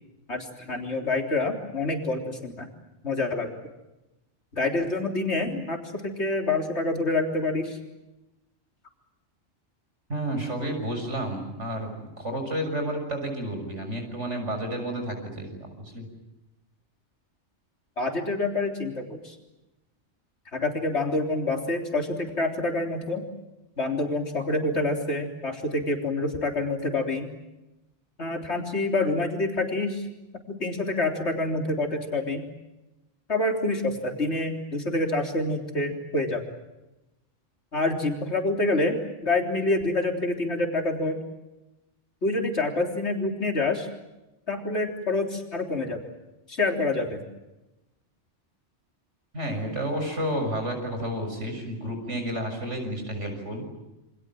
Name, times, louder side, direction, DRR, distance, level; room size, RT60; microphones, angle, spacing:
voice 1, 0.3-2.7 3.0-3.5 4.6-7.8 18.0-19.3 20.5-23.3 23.8-27.3 28.2-30.0 30.5-32.5 33.3-36.4 37.7-39.0 39.2-41.2 42.2-43.9 44.5-46.0 46.5-47.2, left 2 dB, 65° left, 3 dB, 4.0 m, -27 dB
voice 2, 10.1-16.1 49.3-53.7, right 1 dB, 80° right, 4 dB, 7.1 m, -31 dB
28.5 x 26.0 x 7.7 m, 0.98 s
omnidirectional pair, 1.2 m